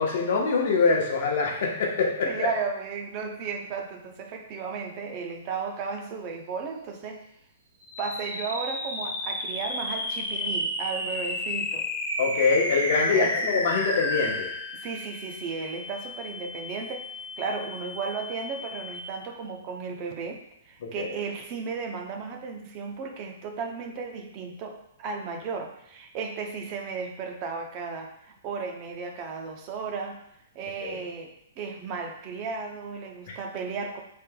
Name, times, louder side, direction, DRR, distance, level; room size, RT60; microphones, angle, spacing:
voice 1, 0.0-2.5 12.2-14.5 20.8-21.2 30.8-31.0, left 4 dB, 50° left, 0 dB, 0.9 m, -24 dB
voice 2, 2.2-7.2 8.0-11.9 12.7-12.8 13.1-13.6 14.7-17.0 17.4-30.2 30.6-34.0, right 5 dB, 25° right, 3 dB, 0.5 m, -34 dB
sound 1, 7.8-19.3, left 1 dB, 10° left, 0.9 m, -33 dB
5.4 x 3.8 x 2.2 m, 0.76 s
hypercardioid pair, 175°, 0 cm